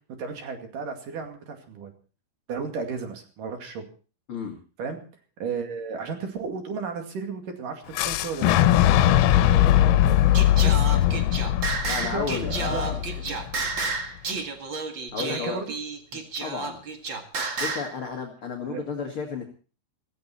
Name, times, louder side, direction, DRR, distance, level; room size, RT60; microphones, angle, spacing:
voice 1, 0.2-1.9 2.5-3.8 4.8-5.0 5.4-8.5 9.3-10.3 10.6-10.9 12.0-13.4 15.3-15.7 18.6-18.8, right 5 dB, 50° right, 5 dB, 3.3 m, -34 dB
Fire / Explosion, 8.0-13.8, left 12 dB, 90° left, 3.5 m, -21 dB
Singing, 10.3-17.9, right 3 dB, 85° right, 1.0 m, -31 dB
voice 2, 11.8-13.0 15.1-15.6 16.4-16.8 17.6-19.4, left 5 dB, 40° left, 2 dB, 2.0 m, -32 dB
16.5 x 15.5 x 4.4 m, 0.38 s
omnidirectional pair, 5.7 m